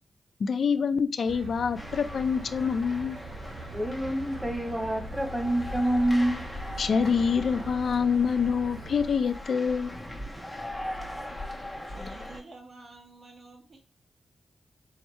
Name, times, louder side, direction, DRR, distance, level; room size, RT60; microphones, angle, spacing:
voice 1, 0.4-3.2 6.8-9.9, left 6 dB, 70° left, 12 dB, 0.3 m, -26 dB
sound 1, 1.3-9.2, right 3 dB, 75° right, 0.7 m, -43 dB
sound 2, 1.8-12.4, left 1 dB, 10° left, 1.2 m, -40 dB
voice 2, 3.7-6.4, right 1 dB, 10° right, 4 dB, 0.9 m, -27 dB
voice 3, 11.8-13.8, right 2 dB, 55° right, 0 dB, 1.6 m, -48 dB
4.6 x 2.7 x 4.3 m, 0.33 s
wide cardioid pair, 110°, 0 cm